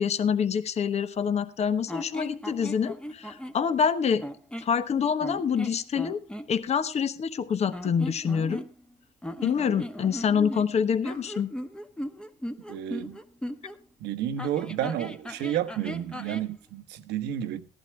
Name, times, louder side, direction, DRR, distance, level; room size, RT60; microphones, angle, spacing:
voice 1, 0.0-4.2 4.6-6.2 6.5-8.6 9.4-11.5, left 7 dB, 40° left, 1.1 m, -26 dB
sound 1, 1.9-3.6 4.2-4.8 5.2-6.5 7.7-8.9 9.2-13.8 14.4-16.5, equal, 5° left, 1.1 m, -37 dB
voice 2, 12.7-13.2 14.0-17.7, right 10 dB, 85° right, 1.1 m, -31 dB
16.0 x 11.5 x 3.3 m
cardioid pair, 110°, 17 cm